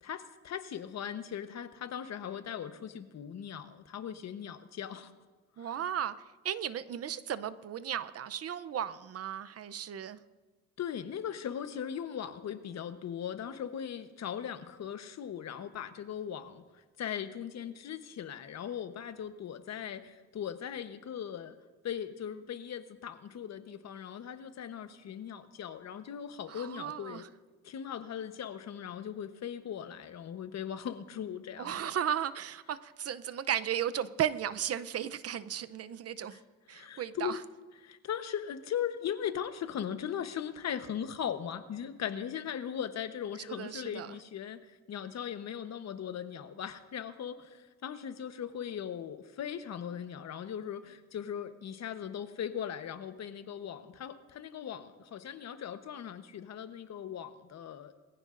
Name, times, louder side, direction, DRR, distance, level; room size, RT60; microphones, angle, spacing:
voice 1, 0.0-5.1 5.6-5.7 10.8-16.6 17.0-21.6 21.8-27.2 27.6-31.9 36.3-36.4 36.7-37.4 37.8-57.9, left 9 dB, 60° left, 9 dB, 1.1 m, -39 dB
voice 2, 5.6-6.1 6.4-10.2 26.5-27.3 31.6-36.4 36.7-37.4 43.5-44.2, right 10 dB, 55° right, 15 dB, 0.7 m, -35 dB
21.5 x 15.0 x 2.6 m, 1.3 s
cardioid pair, 90°, 30 cm